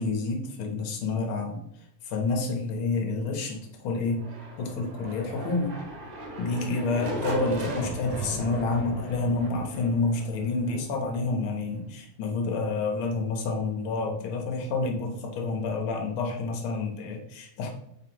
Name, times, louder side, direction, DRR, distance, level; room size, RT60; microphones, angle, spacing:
voice 1, 0.0-1.6 2.1-4.2 4.6-5.7 6.4-17.7, left 3 dB, 60° left, 2 dB, 1.4 m, -29 dB
sound 1, 4.1-11.9, right 2 dB, 75° right, 2.7 m, -37 dB
8.3 x 3.9 x 3.0 m, 0.77 s
omnidirectional pair, 3.4 m